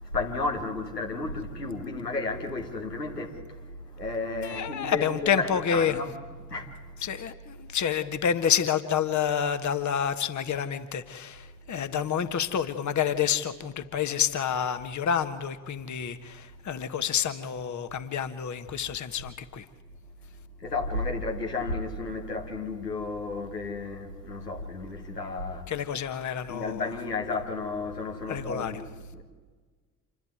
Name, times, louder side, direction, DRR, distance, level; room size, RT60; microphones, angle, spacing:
voice 1, 0.0-6.1 6.5-6.9 20.6-25.7 26.5-29.2, left 3 dB, 85° left, 1.6 m, -33 dB
voice 2, 4.4-6.0 7.0-19.6 25.7-26.8 28.3-28.7, left 8 dB, 35° left, 1.3 m, -28 dB
27.0 x 12.0 x 9.3 m
figure-of-eight pair, 45°, 47 cm